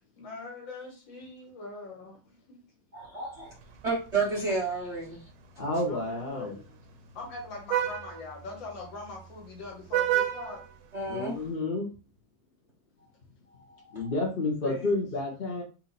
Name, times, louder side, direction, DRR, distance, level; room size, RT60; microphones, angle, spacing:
voice 1, 0.1-2.6 5.9-6.0 6.3-6.8 7.1-10.6 14.6-15.0, left 3 dB, 65° left, 2.2 m, -42 dB
voice 2, 2.9-3.5 3.8-5.2 10.9-11.3 13.9-14.1, right 3 dB, 45° right, 0.9 m, -31 dB
Vehicle horn car horn honking, 3.4-11.5, right 12 dB, 90° right, 1.6 m, -35 dB
voice 3, 5.6-6.5 11.1-11.9 13.9-15.6, left 2 dB, 40° left, 0.7 m, -30 dB
4.4 x 2.8 x 4.2 m
omnidirectional pair, 2.3 m